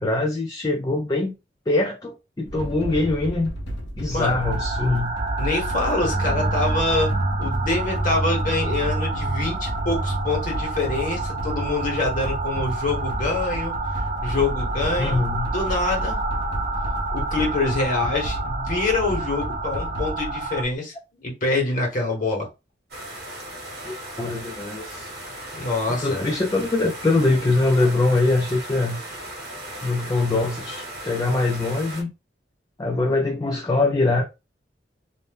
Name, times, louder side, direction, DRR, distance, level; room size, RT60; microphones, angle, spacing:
voice 1, 0.0-1.3 1.7-3.5 4.0-5.1 15.0-15.5 23.8-25.1 26.0-29.0 29.8-32.1 32.8-34.2, left 2 dB, 20° left, 0.4 m, -23 dB
Reptile Chase, 2.4-20.7, equal, 85° left, 0.8 m, -32 dB
sound 1, 4.4-20.6, right 2 dB, 40° right, 0.4 m, -28 dB
voice 2, 5.4-7.1 7.4-15.2 15.5-16.2 17.1-20.9 21.2-22.5 25.5-26.3, left 2 dB, 50° left, 1.3 m, -25 dB
sound 2, 22.9-32.0, right 1 dB, 60° right, 1.0 m, -37 dB
2.6 x 2.1 x 3.4 m
head